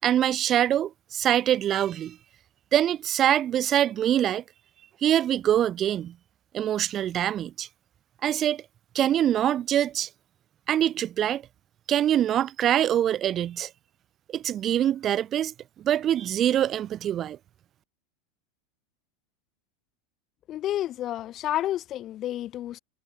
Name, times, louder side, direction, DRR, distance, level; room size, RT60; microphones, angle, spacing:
voice 1, 0.0-2.2 2.7-4.4 5.0-6.1 6.5-7.7 8.2-8.6 8.9-10.1 10.7-11.4 11.9-13.7 14.3-17.4, right 11 dB, 40° right, 7.2 m, -24 dB
voice 2, 20.5-22.8, left 13 dB, 40° left, 3.3 m, -30 dB
hypercardioid pair, 90°, 0 cm